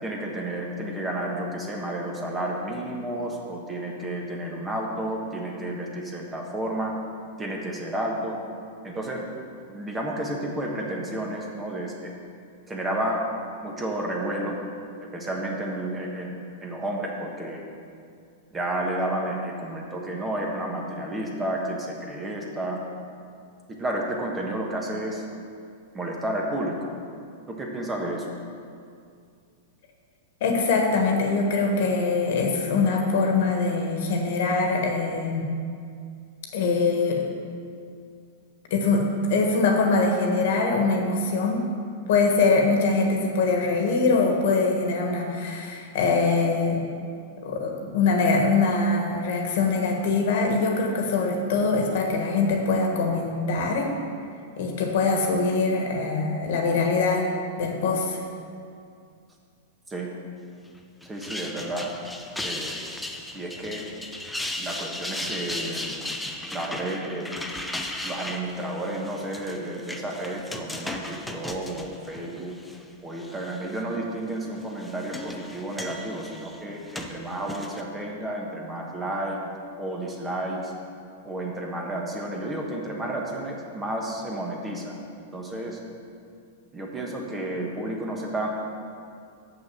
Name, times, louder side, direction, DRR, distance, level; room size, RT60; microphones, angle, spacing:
voice 1, 0.0-6.9 7.4-8.4 8.8-9.2 9.7-12.1 12.7-13.2 13.6-14.6 15.1-16.3 16.6-17.6 18.5-22.8 23.8-25.2 25.9-26.9 27.5-28.3 59.9-60.1 61.0-61.9 62.4-62.8 63.3-63.8 64.6-66.0 66.5-67.3 68.0-72.5 73.0-79.4 79.8-80.7 81.2-85.8 86.7-88.5, right 1 dB, 15° right, -1 dB, 1.2 m, -31 dB
voice 2, 30.4-35.5 36.5-37.3 38.7-41.6 42.1-46.8 47.4-53.9 54.6-57.3 57.6-58.2, left 3 dB, 65° left, 2 dB, 1.5 m, -23 dB
sound 1, 61.0-72.8 73.2-73.8 74.6-77.8, left 1 dB, 5° left, 0.6 m, -36 dB
6.6 x 6.2 x 7.5 m, 2.3 s
hypercardioid pair, 135°, 0 cm